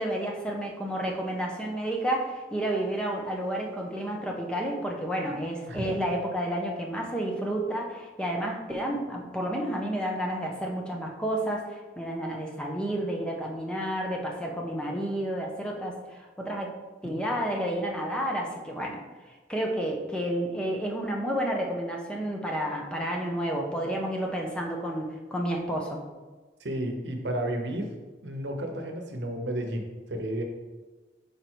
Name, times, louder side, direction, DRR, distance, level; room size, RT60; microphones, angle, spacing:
voice 1, 0.0-16.7 17.0-19.0 19.5-26.0, right 1 dB, 5° left, 0 dB, 0.7 m, -30 dB
voice 2, 26.6-27.9 28.2-30.4, right 1 dB, 70° right, 3 dB, 0.9 m, -32 dB
5.2 x 4.7 x 4.5 m, 1.3 s
head